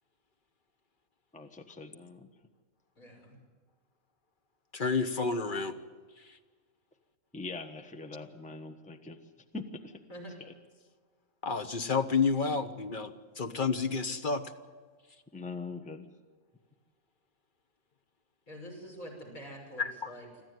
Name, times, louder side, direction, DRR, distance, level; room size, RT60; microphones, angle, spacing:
voice 1, 1.3-2.3 7.3-9.2 9.5-9.9 12.8-12.9 15.3-16.1, left 3 dB, 5° left, 7 dB, 1.2 m, -42 dB
voice 2, 3.0-3.4 10.1-10.3 18.5-20.4, equal, 80° left, -1 dB, 6.2 m, -46 dB
voice 3, 4.7-5.8 11.4-14.5 19.8-20.1, left 5 dB, 40° left, 8 dB, 1.3 m, -30 dB
26.0 x 14.0 x 9.4 m, 1.5 s
omnidirectional pair, 1.5 m